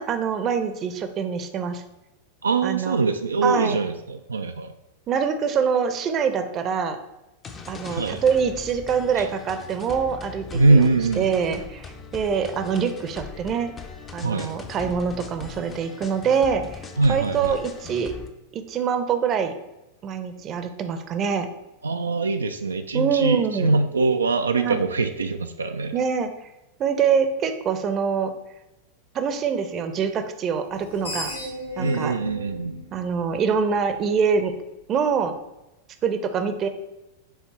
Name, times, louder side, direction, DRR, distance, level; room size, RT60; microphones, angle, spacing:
voice 1, 0.0-1.8 2.6-3.0 3.4-3.8 5.1-7.0 7.7-10.9 11.2-13.7 14.1-16.8 17.1-18.1 18.5-19.5 20.0-21.5 22.9-23.8 24.5-24.8 25.9-26.3 26.8-28.3 29.1-31.3 31.8-32.1 32.9-34.5 34.9-35.3 36.0-36.7, right 6 dB, 30° right, 8 dB, 0.6 m, -24 dB
voice 2, 2.4-4.7 7.9-8.2 9.2-9.3 10.5-11.3 14.2-14.5 17.0-17.5 21.8-26.0 31.8-32.8, right 3 dB, 75° right, 6 dB, 0.3 m, -23 dB
sound 1, 7.4-18.3, left 5 dB, 25° left, 0.6 m, -40 dB
Screech, 30.7-33.9, left 1 dB, 75° left, 1.5 m, -35 dB
7.1 x 3.4 x 4.3 m, 0.98 s
figure-of-eight pair, 90°, 0 cm